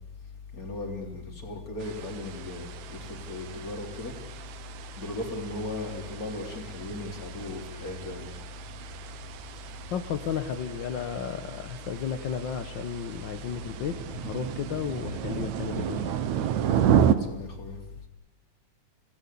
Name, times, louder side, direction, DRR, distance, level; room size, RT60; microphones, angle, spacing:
voice 1, 0.5-4.1 5.0-8.3 17.1-17.8, left 2 dB, 30° left, 3 dB, 3.9 m, -36 dB
sound 1, 1.8-17.2, right 9 dB, 70° right, 2.4 m, -32 dB
voice 2, 9.9-16.1, left 7 dB, 55° left, 7 dB, 1.3 m, -33 dB
28.5 x 17.5 x 8.5 m, 0.84 s
omnidirectional pair, 3.4 m